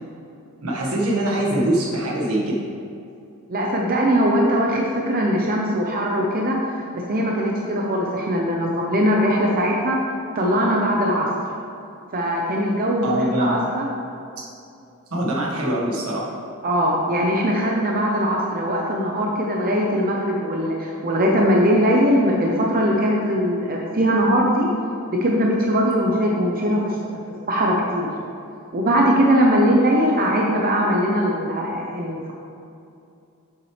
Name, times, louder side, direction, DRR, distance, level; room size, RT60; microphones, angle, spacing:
voice 1, 0.6-2.6 13.0-13.6 15.1-16.3, right 1 dB, 80° right, -3 dB, 1.6 m, -23 dB
voice 2, 3.5-6.6 6.9-10.0 10.3-11.3 12.1-13.9 16.6-24.7 25.1-27.0 27.5-28.1 28.7-32.3, equal, 40° right, -1 dB, 0.7 m, -20 dB
8.1 x 7.1 x 3.3 m, 2.6 s
head